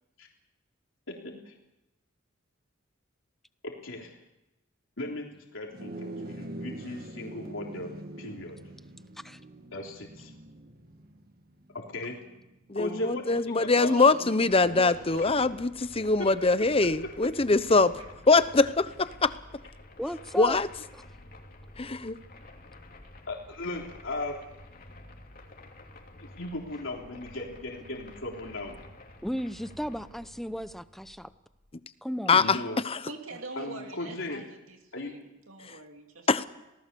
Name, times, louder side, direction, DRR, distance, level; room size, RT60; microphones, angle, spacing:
voice 1, 3.8-4.1 5.0-8.6 9.7-10.3 11.7-12.2 12.8-13.9 14.2-14.3 23.3-24.4 26.2-28.8 32.3-32.8 33.6-34.4 34.9-35.1, left 2 dB, 70° left, 0 dB, 3.6 m, -37 dB
sound 1, 5.7-15.3, right 1 dB, 50° right, 1.8 m, -45 dB
voice 2, 12.7-18.0 18.3-19.3 20.4-20.7 21.8-22.2 32.3-32.6 32.8-33.0 36.3-36.4, left 3 dB, 30° left, 13 dB, 0.9 m, -23 dB
voice 3, 13.8-14.3 14.7-15.3 33.1-36.5, right 2 dB, 80° right, 3 dB, 2.7 m, -42 dB
sound 2, 14.5-31.8, left 2 dB, 45° left, 3.0 m, -50 dB
voice 4, 20.0-20.6 20.9-21.0 29.2-31.3 32.0-32.4, equal, ahead, 12 dB, 0.8 m, -35 dB
27.0 x 18.5 x 6.9 m, 0.95 s
head